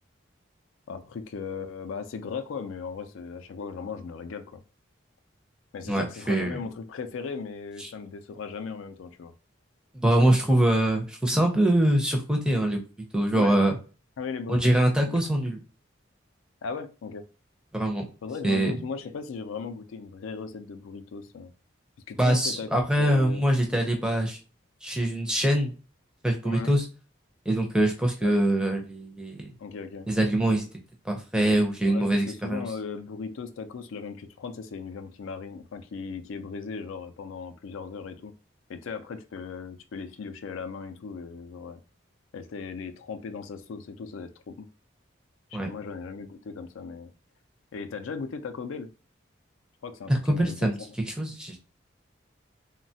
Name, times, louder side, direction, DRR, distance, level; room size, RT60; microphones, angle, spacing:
voice 1, 0.9-4.6 5.7-9.3 13.3-13.6 14.2-14.7 15.0-15.2 16.6-17.2 18.2-21.5 22.1-23.5 26.4-26.7 28.2-28.4 29.6-30.1 31.8-38.3 38.7-41.8 42.3-44.7 45.5-47.1 47.7-48.9 49.8-50.7, left 5 dB, 85° left, 10 dB, 0.4 m, -37 dB
voice 2, 5.9-6.6 9.9-12.8 13.1-13.8 14.5-15.6 17.7-18.0 18.4-18.7 22.2-24.4 24.8-25.7 26.2-26.8 27.5-29.5 30.1-30.7 31.1-32.6 45.5-45.7 50.1-50.8 51.1-51.6, right 1 dB, 5° right, 2 dB, 0.4 m, -23 dB
3.0 x 2.1 x 2.7 m, 0.35 s
head